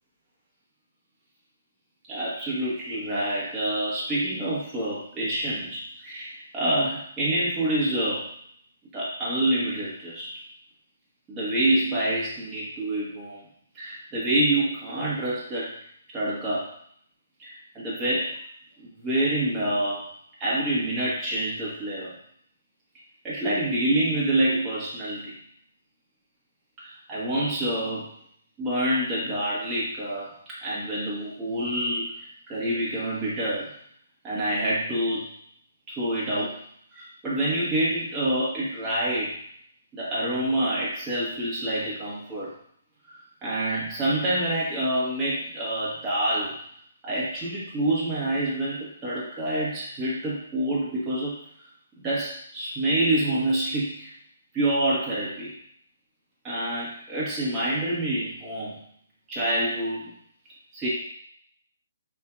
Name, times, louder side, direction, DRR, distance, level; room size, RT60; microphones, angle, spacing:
voice 1, 2.1-8.2 8.9-10.3 11.3-13.4 13.7-15.7 16.1-16.7 17.4-18.3 18.8-20.0 20.4-22.1 23.2-25.3 26.8-28.1 28.6-30.3 30.6-33.7 34.2-35.3 35.9-36.6 36.9-39.3 39.9-42.5 43.1-46.6 47.0-51.4 52.0-54.1 54.5-55.5 56.4-58.7 59.3-60.1 60.7-60.9, right 1 dB, 15° right, -8 dB, 1.2 m, -27 dB
4.4 x 2.7 x 2.3 m, 0.65 s
figure-of-eight pair, 140°, 0 cm